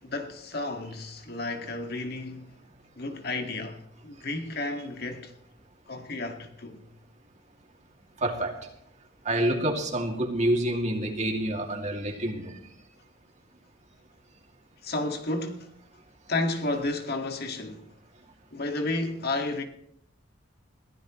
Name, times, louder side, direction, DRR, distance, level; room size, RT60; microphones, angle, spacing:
voice 1, 0.0-2.6 3.0-5.3 5.9-6.9 14.8-15.7 16.3-17.9 18.5-19.6, left 2 dB, 55° left, 1.9 m, -32 dB
voice 2, 8.2-8.7 9.2-12.5, right 1 dB, 40° right, 2.4 m, -27 dB
22.0 x 15.0 x 3.1 m
head